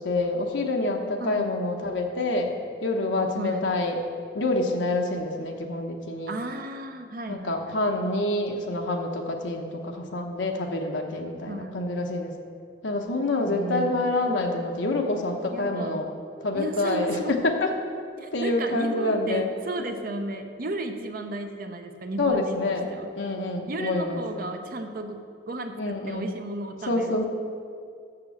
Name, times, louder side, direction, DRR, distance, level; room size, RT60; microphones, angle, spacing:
voice 1, 0.0-2.5 2.8-4.0 4.3-6.4 7.3-12.3 12.8-16.1 16.4-17.7 18.3-19.5 22.2-22.9 23.2-24.2 25.8-26.3 26.9-27.2, left 2 dB, 85° left, 2 dB, 0.9 m, -27 dB
voice 2, 1.2-1.5 3.4-3.7 6.3-7.8 11.5-11.8 13.5-14.2 15.5-16.1 16.5-17.4 18.2-22.6 22.9-23.1 23.7-27.2, right 1 dB, 50° right, 5 dB, 0.6 m, -34 dB
6.7 x 6.5 x 7.1 m, 2.3 s
head